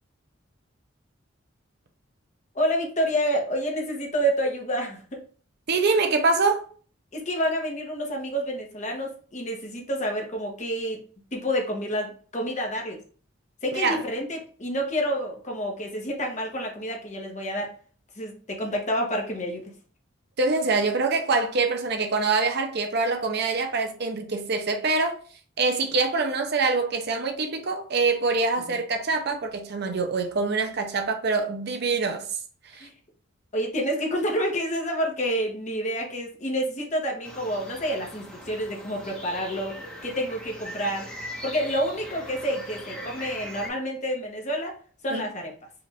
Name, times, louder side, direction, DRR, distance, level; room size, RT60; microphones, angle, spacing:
voice 1, 2.5-5.2 7.1-11.0 11.3-13.0 13.6-17.7 18.2-19.7 28.7-28.8 32.8-32.9 33.5-41.1 41.4-44.7 45.0-45.5, equal, 35° left, 1.1 m, -28 dB
voice 2, 5.7-6.6 13.7-14.0 20.4-25.2 25.6-32.2 32.7-32.9 45.1-45.2, right 3 dB, 55° right, 0.6 m, -25 dB
sound 1, 37.2-43.7, equal, 5° left, 1.0 m, -40 dB
4.8 x 2.6 x 3.4 m
head